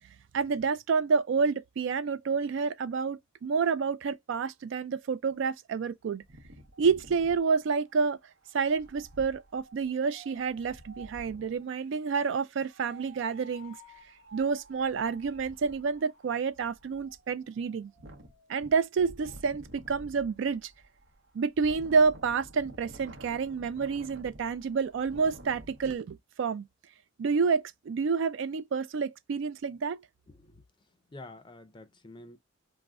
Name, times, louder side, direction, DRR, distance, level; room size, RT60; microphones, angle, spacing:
voice 1, 0.3-6.2 6.8-8.2 8.5-13.7 14.3-17.9 18.5-20.7 21.3-26.7 27.2-30.0, right 5 dB, 65° right, 0.3 m, -29 dB
Wind, 6.2-11.6 12.7-26.0, right 1 dB, 80° right, 0.7 m, -51 dB
voice 2, 31.1-32.4, left 2 dB, 25° left, 0.4 m, -48 dB
3.4 x 2.1 x 2.3 m
head